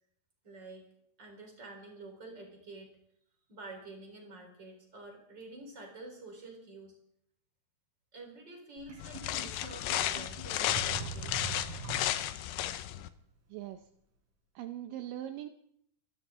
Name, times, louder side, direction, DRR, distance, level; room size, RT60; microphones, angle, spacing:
voice 1, 0.4-0.9 1.2-2.9 3.5-7.0 8.1-11.7, right 2 dB, 25° right, 2 dB, 4.4 m, -49 dB
Sink (filling or washing), 8.8-12.5, right 4 dB, 55° right, 4.4 m, -43 dB
sound 1, 9.0-13.1, left 13 dB, 85° left, 2.8 m, -33 dB
voice 2, 13.5-13.9 14.6-15.5, right 12 dB, 75° right, 7 dB, 2.1 m, -41 dB
26.0 x 13.0 x 3.8 m, 0.73 s
omnidirectional pair, 4.6 m